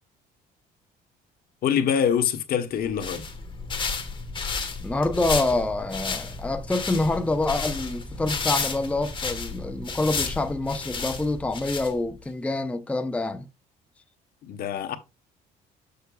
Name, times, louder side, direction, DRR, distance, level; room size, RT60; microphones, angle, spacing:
voice 1, 1.6-3.3 14.4-15.0, left 8 dB, 65° left, 1.1 m, -25 dB
sound 1, 2.8-12.3, left 4 dB, 30° left, 1.3 m, -32 dB
voice 2, 4.8-13.5, left 2 dB, 5° left, 0.6 m, -26 dB
7.8 x 6.6 x 2.3 m
cardioid pair, 110°, 17 cm